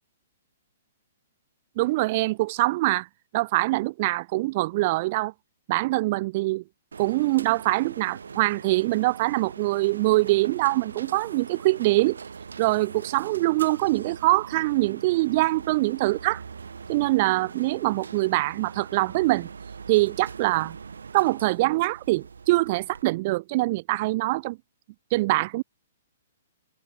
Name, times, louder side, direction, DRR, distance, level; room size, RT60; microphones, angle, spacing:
voice 1, 1.8-3.1 3.3-5.3 5.7-6.6 7.0-12.2 12.6-16.4 16.9-19.5 19.9-20.8 21.1-24.6 25.1-25.6, right 20 dB, 45° right, 2.7 m, -23 dB
sound 1, 6.9-23.0, right 5 dB, 75° right, 5.3 m, -42 dB
figure-of-eight pair, 120°, 0 cm